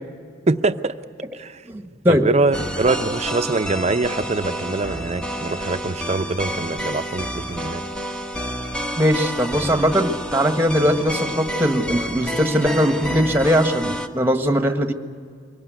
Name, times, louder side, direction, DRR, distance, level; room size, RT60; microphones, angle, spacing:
voice 1, 0.5-1.0 1.3-1.6 2.1-7.8, right 3 dB, 35° right, 10 dB, 0.7 m, -23 dB
voice 2, 1.7-2.2 9.0-14.9, equal, 10° right, 6 dB, 1.5 m, -20 dB
sound 1, 2.5-14.1, equal, 5° left, 1.2 m, -29 dB
24.0 x 18.0 x 9.4 m, 2.1 s
head